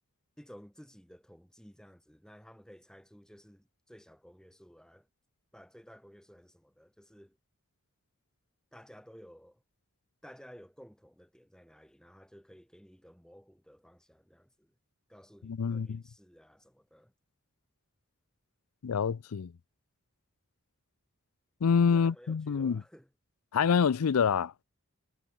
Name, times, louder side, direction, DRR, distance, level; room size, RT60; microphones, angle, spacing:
voice 1, 0.4-5.1 5.5-7.4 8.7-9.6 10.2-14.7 15.1-17.1 21.9-23.1, equal, 5° left, 2.6 m, -55 dB
voice 2, 15.4-16.0 18.8-19.5 21.6-22.8 23.5-24.6, left 6 dB, 85° left, 0.5 m, -27 dB
head